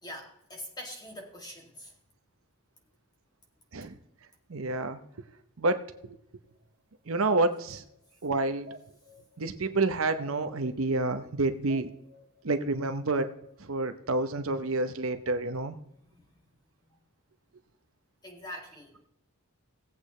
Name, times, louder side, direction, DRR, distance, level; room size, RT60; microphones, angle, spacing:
voice 1, 0.0-1.9 16.0-16.4 18.2-19.0, equal, 20° left, 1 dB, 2.4 m, -44 dB
voice 2, 4.5-5.0 5.6-6.2 7.1-7.8 8.2-8.7 9.4-11.9 12.4-13.3 13.6-15.8, right 2 dB, 65° right, 10 dB, 0.8 m, -29 dB
sound 1, 6.4-6.5 7.0-7.9 8.4-9.3 9.8-9.9 10.2-10.9 11.3-11.4 11.7-12.4 12.8-13.3, equal, 50° right, 1.8 m, -49 dB
18.0 x 8.3 x 3.2 m, 0.75 s
head